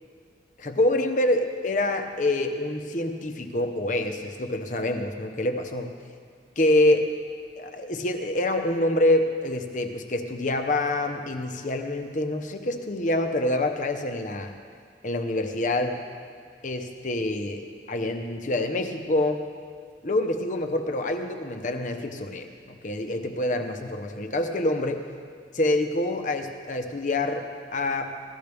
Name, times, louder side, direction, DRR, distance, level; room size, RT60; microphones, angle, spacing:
voice 1, 0.6-5.9 6.6-7.1 7.6-14.6 15.0-16.1 16.6-19.4 20.0-25.1 25.5-28.1, left 1 dB, 45° left, 6 dB, 0.8 m, -26 dB
17.0 x 13.5 x 3.5 m, 2.1 s
head